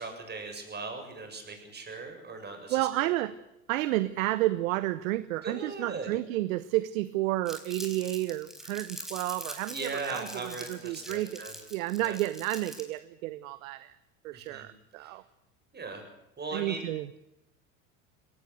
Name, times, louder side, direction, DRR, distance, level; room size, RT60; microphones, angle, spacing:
voice 1, 0.0-3.1 5.4-6.1 9.7-11.5 12.0-12.2 14.3-14.7 15.0-15.2 15.7-16.0 16.4-16.8, right 3 dB, 25° right, 5 dB, 7.4 m, -39 dB
voice 2, 2.7-3.4 3.7-11.4 11.7-13.9 14.2-15.2 16.5-17.1, right 16 dB, 80° right, 16 dB, 1.0 m, -31 dB
Crumpling crinkling, 7.5-13.0, equal, ahead, 4.5 m, -44 dB
22.0 x 18.0 x 8.2 m, 0.89 s
hypercardioid pair, 90°, 40 cm